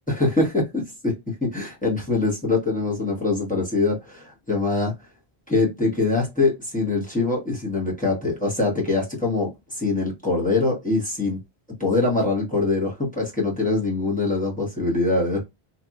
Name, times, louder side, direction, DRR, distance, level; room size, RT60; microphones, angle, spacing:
voice 1, 0.1-4.9 5.5-11.4 11.8-15.4, left 3 dB, 10° left, 1.1 m, -23 dB
2.9 x 2.5 x 2.3 m
omnidirectional pair, 1.0 m